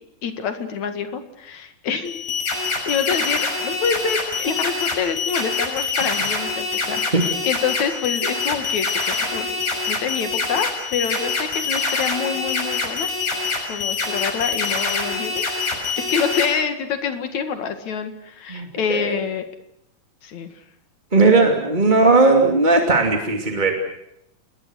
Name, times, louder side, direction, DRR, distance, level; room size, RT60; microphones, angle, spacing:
voice 1, 0.2-2.2 2.9-9.5 9.9-13.1 13.7-15.4 16.0-19.4 20.2-20.5, left 6 dB, 60° left, 8 dB, 3.1 m, -26 dB
sound 1, 2.1-16.5, left 4 dB, 75° left, 7.8 m, -25 dB
voice 2, 18.5-19.1 21.1-23.7, right 3 dB, 15° right, 3 dB, 2.4 m, -17 dB
29.0 x 21.0 x 6.4 m, 0.78 s
omnidirectional pair, 3.9 m